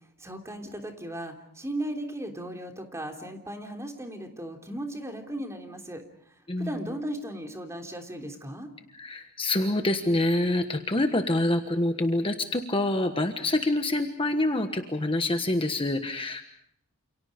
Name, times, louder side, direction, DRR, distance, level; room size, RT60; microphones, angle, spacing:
voice 1, 0.2-6.0 6.6-8.7, right 1 dB, 15° right, 3 dB, 3.2 m, -36 dB
voice 2, 8.9-16.4, left 1 dB, 25° left, 6 dB, 1.3 m, -26 dB
29.0 x 28.5 x 5.2 m, 0.71 s
head